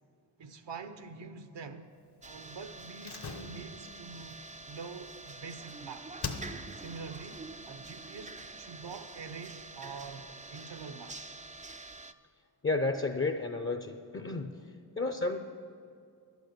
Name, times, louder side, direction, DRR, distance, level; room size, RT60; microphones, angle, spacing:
voice 1, 0.4-1.9 2.2-6.1 6.7-11.2, right 5 dB, 70° right, 0.9 m, -45 dB
sound 1, 2.2-12.1, right 3 dB, 15° right, 0.4 m, -47 dB
Slam, 3.0-5.7 6.2-6.9 7.2-7.3, left 4 dB, 55° left, 1.1 m, -42 dB
voice 2, 12.6-14.5 15.0-15.4, left 3 dB, 25° left, 0.7 m, -31 dB
11.5 x 8.4 x 6.6 m
cardioid pair, 60°, 46 cm